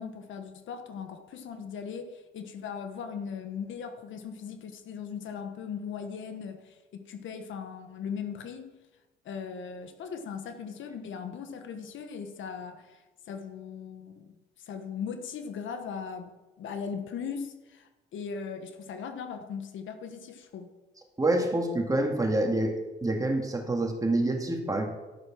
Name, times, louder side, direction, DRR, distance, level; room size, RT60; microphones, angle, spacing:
voice 1, 0.0-8.7 9.2-14.3 14.6-20.7, left 6 dB, 75° left, 7 dB, 1.3 m, -39 dB
voice 2, 21.2-22.7 23.0-24.9, right 2 dB, 15° right, 3 dB, 2.1 m, -27 dB
12.5 x 6.4 x 6.0 m, 1.1 s
cardioid pair, 90°, 20 cm